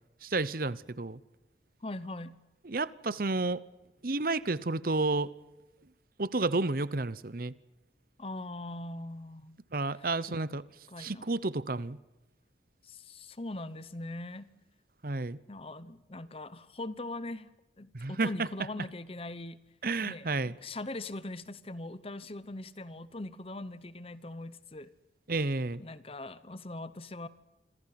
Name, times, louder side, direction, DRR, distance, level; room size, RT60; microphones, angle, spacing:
voice 1, 0.2-1.2 2.6-3.6 4.0-5.3 6.2-7.5 9.7-10.6 11.0-12.0 15.0-15.4 17.9-18.5 19.8-20.6 25.3-25.8, right 3 dB, 50° right, 18 dB, 0.9 m, -31 dB
voice 2, 1.8-2.4 8.2-9.6 9.9-11.2 12.8-14.5 15.5-17.5 17.8-19.6 20.0-24.9 25.8-27.3, left 2 dB, 30° left, 15 dB, 0.9 m, -41 dB
27.0 x 25.5 x 5.9 m, 1.0 s
head